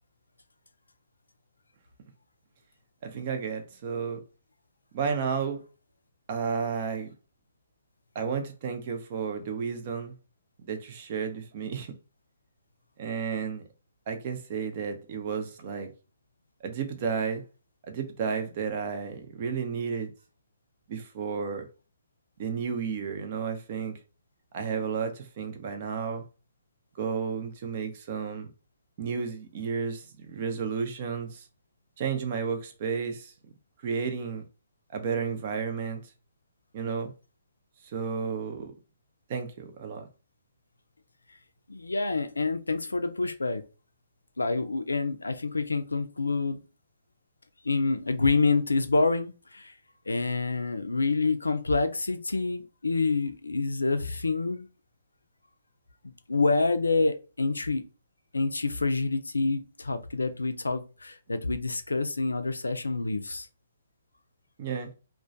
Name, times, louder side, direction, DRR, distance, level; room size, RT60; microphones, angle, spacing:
voice 1, 3.0-4.2 4.9-5.6 6.3-7.1 8.1-10.1 10.6-11.9 13.0-13.6 14.1-15.9 16.6-17.4 17.8-20.1 20.9-21.7 22.4-24.0 24.5-26.2 27.0-28.5 29.0-31.4 32.0-33.3 33.8-34.4 34.9-36.0 36.7-37.1 37.9-38.7 39.3-40.1 64.6-64.9, right 6 dB, 45° right, 0.5 m, -32 dB
voice 2, 41.7-43.6 44.4-46.6 47.6-49.7 50.1-54.7 56.0-57.8 58.3-63.5, left 3 dB, 85° left, 0.4 m, -27 dB
2.2 x 2.1 x 2.6 m
figure-of-eight pair, 130°, 0 cm